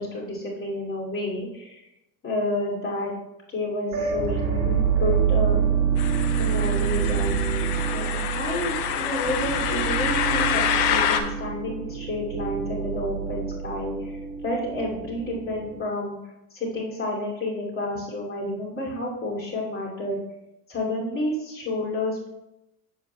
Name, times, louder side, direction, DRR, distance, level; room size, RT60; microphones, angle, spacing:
voice 1, 0.0-1.8 2.2-3.1 3.5-5.6 6.4-14.1 14.4-16.2 16.5-20.2 20.7-22.3, left 1 dB, 30° left, -4 dB, 2.6 m, -30 dB
sound 1, 3.9-15.8, right 7 dB, 45° right, 2.0 m, -27 dB
sound 2, 6.0-11.2, left 9 dB, 70° left, 0.8 m, -27 dB
7.7 x 7.4 x 2.3 m, 0.90 s
supercardioid pair, 100°, 41 cm